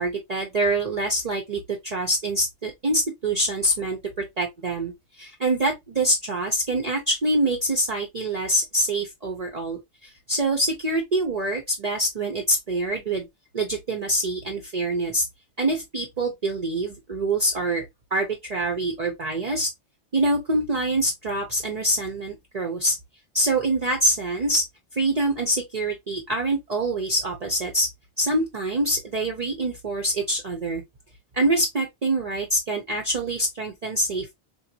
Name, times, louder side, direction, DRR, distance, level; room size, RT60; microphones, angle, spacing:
voice 1, 0.0-4.9 5.2-13.3 13.5-15.3 15.6-17.8 18.1-19.7 20.1-22.9 23.3-24.6 24.9-27.9 28.2-30.8 31.3-34.3, right 1 dB, 40° right, 0.7 m, -25 dB
4.5 x 2.5 x 2.7 m
omnidirectional pair, 1.1 m